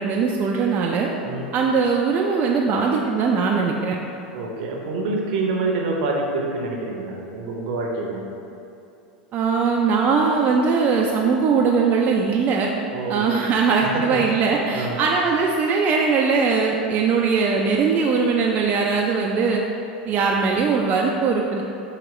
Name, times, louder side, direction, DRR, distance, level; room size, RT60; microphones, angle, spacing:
voice 1, 0.0-1.1 1.5-4.0 9.3-12.7 13.1-19.6 20.1-21.6, right 5 dB, 35° right, -1 dB, 0.3 m, -20 dB
voice 2, 4.3-8.2 12.9-13.4 13.8-14.4 14.7-15.0, right 3 dB, 65° right, 0 dB, 0.7 m, -27 dB
4.8 x 2.8 x 3.0 m, 2.7 s
hypercardioid pair, 95°, 5 cm